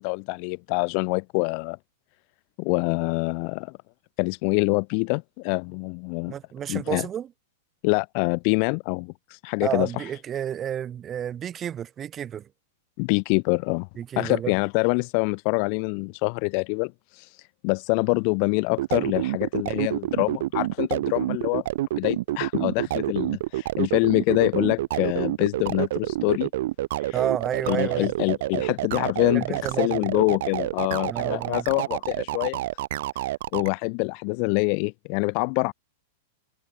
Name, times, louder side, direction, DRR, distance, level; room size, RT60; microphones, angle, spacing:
voice 1, 0.0-1.8 2.6-3.7 4.2-6.3 6.7-7.1 7.8-10.0 13.0-13.9 14.2-17.3 17.6-21.7 22.0-26.5 27.0-27.2 27.7-32.6 33.5-35.7, left 40 dB or more, 40° left, 0.5 m, -25 dB
voice 2, 6.3-7.3 9.6-12.5 14.0-14.5 27.1-28.1 29.3-30.0 31.1-31.6, right 9 dB, 20° right, 3.9 m, -30 dB
sound 1, 18.7-33.7, right 15 dB, 55° right, 2.6 m, -28 dB
supercardioid pair, 165°, 0 cm